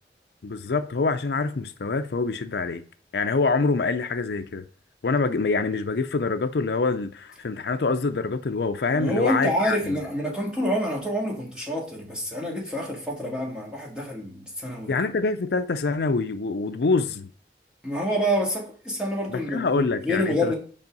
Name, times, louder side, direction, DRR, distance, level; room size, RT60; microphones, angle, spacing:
voice 1, 0.4-2.8 3.1-4.6 5.0-10.0 14.9-17.3 19.3-20.5, left 4 dB, 65° left, 0.5 m, -25 dB
voice 2, 8.9-14.9 17.8-20.5, equal, 5° right, 1.9 m, -27 dB
5.5 x 5.4 x 5.3 m
head